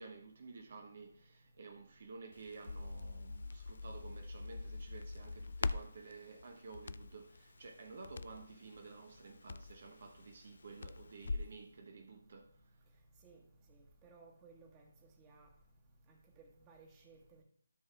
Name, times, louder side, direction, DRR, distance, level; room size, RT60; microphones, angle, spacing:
voice 1, 0.0-12.7, right 4 dB, 50° right, 0.9 m, -52 dB
Crackle, 2.3-11.6, left 3 dB, 55° left, 0.3 m, -44 dB
voice 2, 13.7-14.9 15.2-15.5 16.1-17.4, right 4 dB, 20° right, 1.4 m, -60 dB
13.0 x 6.5 x 2.4 m
figure-of-eight pair, 150°, 0 cm